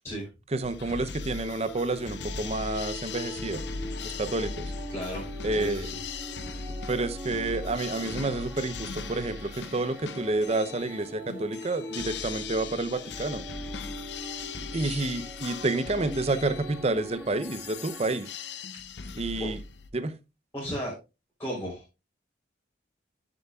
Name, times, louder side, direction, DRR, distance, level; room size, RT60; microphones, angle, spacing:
voice 1, 0.5-3.6 4.0-4.7 5.4-5.9 6.9-13.4 14.7-18.3 19.2-19.6 19.9-20.2, right 2 dB, 35° right, 0.6 m, -29 dB
sound 1, 0.6-19.9, left 5 dB, 65° left, 0.7 m, -39 dB
sound 2, 1.3-18.6, equal, 10° right, 1.6 m, -42 dB
voice 2, 4.9-5.2 5.5-6.0 19.4-19.5 20.5-20.9 21.4-21.8, equal, 15° left, 3.6 m, -34 dB
11.0 x 6.8 x 2.3 m
head